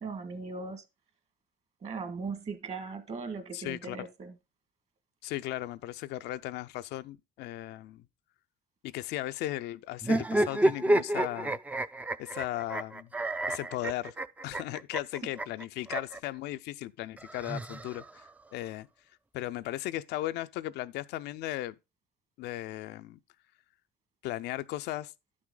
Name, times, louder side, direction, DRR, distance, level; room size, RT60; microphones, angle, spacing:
voice 1, 0.0-0.8 1.8-4.3, right 4 dB, 40° right, 1.6 m, -38 dB
voice 2, 3.5-4.0 5.2-8.0 8.8-11.6 12.2-13.1 13.5-14.1 14.4-18.9 19.3-21.7 22.4-23.2 24.2-25.1, left 15 dB, 80° left, 0.5 m, -36 dB
sound 1, 10.0-16.2 17.2-18.3, right 1 dB, 10° right, 0.4 m, -30 dB
11.0 x 6.1 x 3.8 m
cardioid pair, 110°, 17 cm